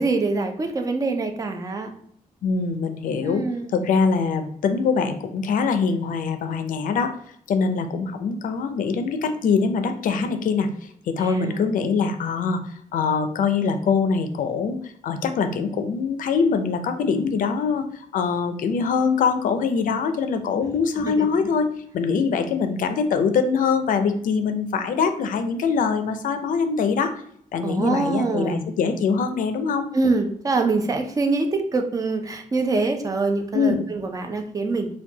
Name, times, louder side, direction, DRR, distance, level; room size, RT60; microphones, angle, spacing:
voice 1, 0.0-1.9 3.2-3.7 11.2-11.7 21.0-21.5 27.6-28.6 29.9-34.9, right 3 dB, 25° right, 5 dB, 0.4 m, -24 dB
voice 2, 2.4-3.4 3.7-7.2 7.5-21.7 21.9-27.2 27.5-29.9 33.5-33.8, left 5 dB, 75° left, 8 dB, 0.4 m, -23 dB
4.5 x 2.3 x 2.8 m, 0.66 s
wide cardioid pair, 150°, 14 cm